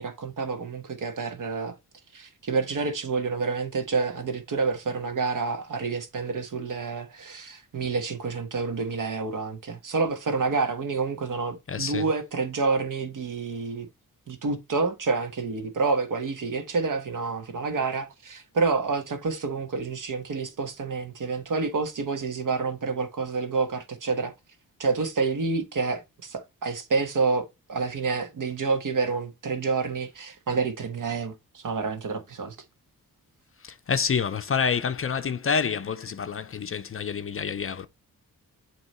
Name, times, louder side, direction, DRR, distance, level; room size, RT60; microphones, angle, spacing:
voice 1, 0.0-1.8 2.1-13.9 14.3-24.3 24.8-32.6, right 4 dB, 60° right, 1.3 m, -28 dB
voice 2, 11.7-12.0 33.6-37.9, left 6 dB, 40° left, 0.5 m, -28 dB
7.8 x 3.0 x 4.2 m
wide cardioid pair, 110°, 35 cm